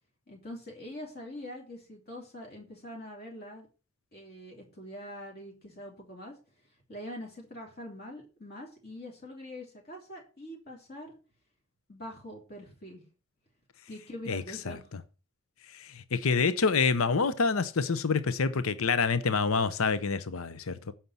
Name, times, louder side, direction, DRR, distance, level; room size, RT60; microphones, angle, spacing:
voice 1, 0.3-3.7 4.1-6.3 6.9-11.1 11.9-13.0 13.9-14.8, left 1 dB, 45° left, 3.2 m, -44 dB
voice 2, 14.3-15.0 15.7-20.9, left 5 dB, 70° left, 0.7 m, -27 dB
9.6 x 5.9 x 6.8 m
head